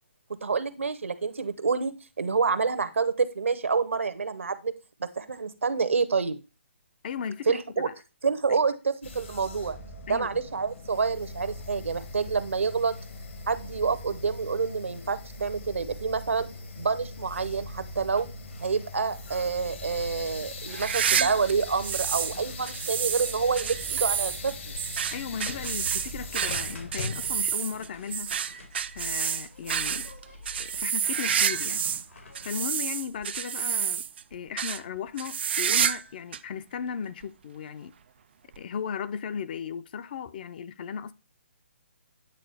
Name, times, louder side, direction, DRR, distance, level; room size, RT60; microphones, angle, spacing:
voice 1, 0.4-4.7 5.0-6.4 7.5-7.9 8.2-9.8 10.1-12.9 13.5-16.5 16.8-18.3 18.6-24.7, right 5 dB, 80° right, 0.9 m, -28 dB
voice 2, 7.0-7.9 8.5-8.6 10.1-10.3 25.1-28.3 28.9-30.1 30.6-31.9 32.4-34.0 34.3-37.9 38.6-41.1, left 7 dB, 45° left, 0.5 m, -36 dB
sound 1, 9.0-27.5, left 2 dB, 65° left, 1.5 m, -40 dB
sound 2, 20.7-22.4 22.7-32.1 32.4-34.2 34.6-34.8 35.2-36.1 36.3-36.4 37.2-37.3 38.5-38.6, right 8 dB, 55° right, 0.4 m, -29 dB
sound 3, 25.6-32.5, left 3 dB, 80° left, 2.6 m, -48 dB
9.1 x 3.9 x 3.4 m
figure-of-eight pair, 140°, 7 cm